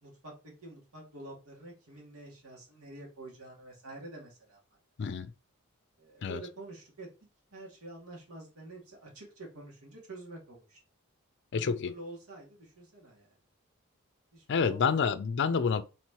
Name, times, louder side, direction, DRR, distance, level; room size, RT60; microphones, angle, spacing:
voice 1, 0.0-4.6 6.0-7.1 7.5-10.8 11.5-13.3 14.3-15.1, right 2 dB, 90° right, 2.2 m, -47 dB
voice 2, 5.0-5.3 6.2-6.4 11.5-11.9 14.5-15.8, left 5 dB, 55° left, 0.4 m, -28 dB
4.5 x 3.7 x 2.9 m
head